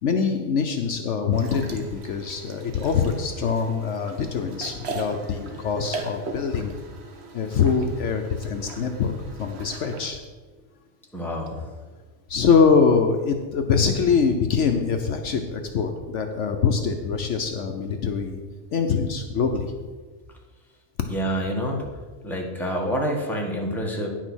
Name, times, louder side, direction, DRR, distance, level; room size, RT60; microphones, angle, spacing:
voice 1, 0.0-6.7 7.3-9.1 9.4-10.2 12.3-18.4 18.7-19.9, left 5 dB, 65° left, 5 dB, 1.0 m, -23 dB
sound 1, 1.3-10.1, right 3 dB, 55° right, 1.2 m, -39 dB
voice 2, 11.1-11.6 21.1-21.8 22.2-24.1, equal, ahead, -1 dB, 1.4 m, -27 dB
9.8 x 6.2 x 6.2 m, 1.4 s
omnidirectional pair, 1.4 m